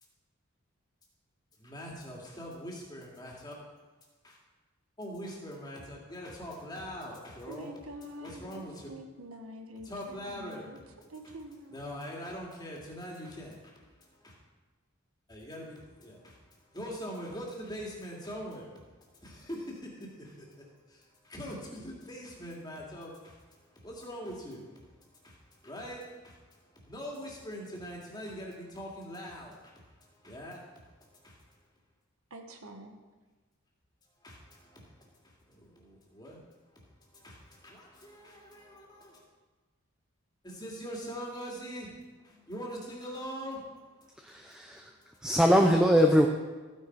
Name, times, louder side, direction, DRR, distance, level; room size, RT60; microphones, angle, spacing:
voice 1, 1.6-3.5 4.2-4.4 5.0-7.7 8.2-8.9 9.8-11.3 11.7-14.3 15.3-18.7 19.1-29.7 30.0-31.4 34.2-36.4 36.7-36.8 37.1-39.2 40.4-45.3, equal, 20° left, -2 dB, 2.5 m, -43 dB
voice 2, 7.4-10.8 11.1-11.9 32.3-33.0, equal, 80° right, 4 dB, 1.5 m, -46 dB
voice 3, 44.2-44.9 45.2-46.3, equal, 5° right, 2 dB, 0.6 m, -22 dB
14.5 x 9.8 x 4.8 m, 1.3 s
head